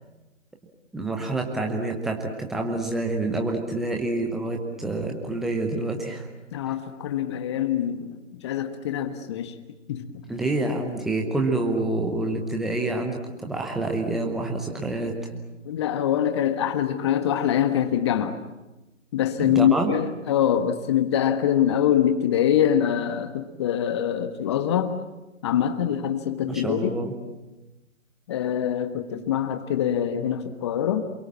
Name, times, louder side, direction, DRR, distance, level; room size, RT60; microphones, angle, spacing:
voice 1, 0.9-6.3 10.3-15.2 19.4-19.9 26.5-27.1, right 2 dB, ahead, 1 dB, 0.8 m, -27 dB
voice 2, 6.5-9.5 9.9-10.2 15.6-18.4 19.1-25.0 25.4-26.9 28.3-31.0, left 10 dB, 20° left, 8 dB, 1.4 m, -24 dB
28.0 x 22.5 x 7.6 m, 1.0 s
figure-of-eight pair, 145°, 37 cm